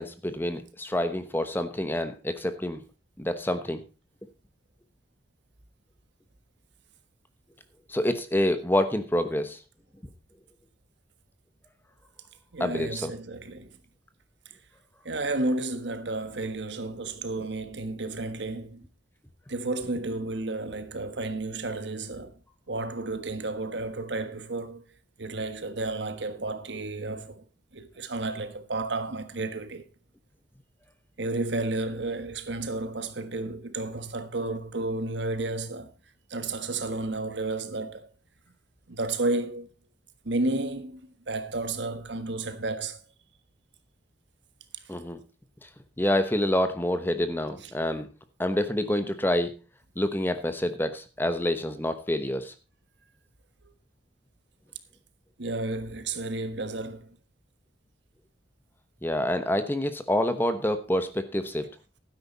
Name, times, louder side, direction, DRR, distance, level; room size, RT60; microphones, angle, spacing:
voice 1, 0.0-2.8 3.2-3.8 7.9-9.6 12.6-13.1 17.4-17.5 44.9-45.2 45.6-45.7 46.0-48.1 48.4-49.6 50.0-52.5 59.0-61.7, left 1 dB, 10° left, 1.0 m, -27 dB
voice 2, 12.5-13.8 15.0-18.8 19.5-22.4 22.7-24.8 25.2-27.4 27.7-29.8 31.2-35.9 36.3-38.1 38.9-39.7 40.2-41.0 41.3-43.0 47.6-47.7 55.4-57.2, right 2 dB, 70° right, 1.4 m, -32 dB
12.5 x 10.0 x 4.1 m
head